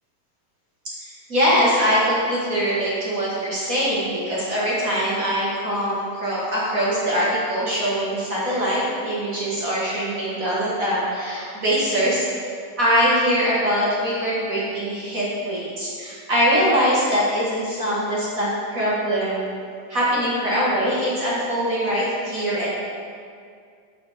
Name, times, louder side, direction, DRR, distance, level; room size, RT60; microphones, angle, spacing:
voice 1, 1.3-12.3 12.8-19.5 19.9-22.7, equal, 50° right, -8 dB, 1.0 m, -22 dB
5.3 x 4.9 x 6.3 m, 2.3 s
omnidirectional pair, 3.5 m